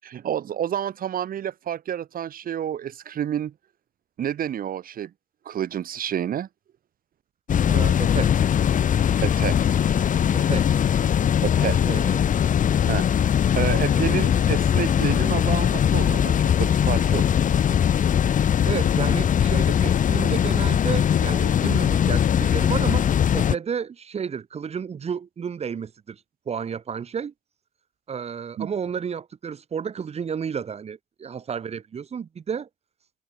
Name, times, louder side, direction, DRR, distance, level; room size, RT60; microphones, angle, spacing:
voice 1, 0.0-3.5 4.2-5.1 5.4-6.5 9.2-9.6 11.4-11.8 12.9-13.1 13.5-17.2 28.6-28.7, right 10 dB, 85° right, 5.9 m, -29 dB
sound 1, 7.5-23.5, left 9 dB, 65° left, 4.1 m, -20 dB
voice 2, 7.6-8.3 10.3-10.7 11.6-12.2 18.6-23.1 23.3-26.2 26.5-27.3 28.1-32.7, right 7 dB, 45° right, 6.0 m, -31 dB
wide cardioid pair, 175°, 14 cm